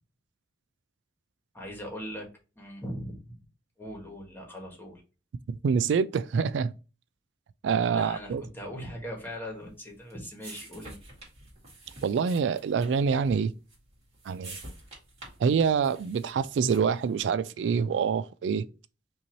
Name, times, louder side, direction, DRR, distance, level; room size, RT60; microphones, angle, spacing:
voice 1, 1.5-2.3 2.5-3.4 3.8-5.0 7.9-11.0, equal, 10° left, 1.5 m, -40 dB
voice 2, 5.6-6.7 7.6-8.4 12.0-13.5 14.3-14.6 15.4-18.7, right 6 dB, 75° right, 0.3 m, -26 dB
sound 1, 9.6-17.1, right 2 dB, 35° right, 2.1 m, -49 dB
5.5 x 2.7 x 3.0 m
head